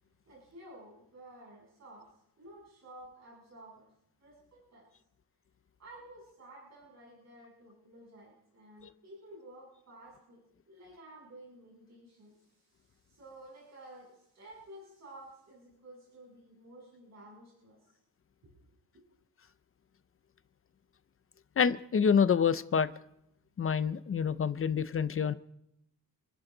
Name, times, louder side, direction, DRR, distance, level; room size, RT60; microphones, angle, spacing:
voice 1, 0.3-3.8 4.2-4.9 5.8-17.9 18.4-19.0, right 1 dB, 45° right, -5 dB, 7.4 m, -53 dB
voice 2, 21.6-22.9 23.6-25.3, left 7 dB, 35° left, 13 dB, 0.6 m, -27 dB
29.0 x 10.5 x 3.9 m, 0.79 s
wide cardioid pair, 160°, 39 cm